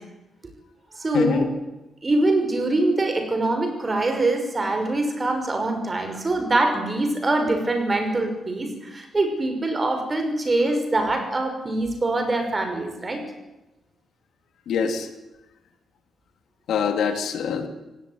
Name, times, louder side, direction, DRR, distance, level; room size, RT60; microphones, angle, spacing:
voice 1, 0.9-1.5 2.0-13.2, right 2 dB, 25° right, 5 dB, 5.8 m, -24 dB
voice 2, 14.7-15.1 16.7-17.7, left 6 dB, 80° left, 7 dB, 3.0 m, -24 dB
24.5 x 18.0 x 9.7 m, 1.0 s
cardioid pair, 125°, 0 cm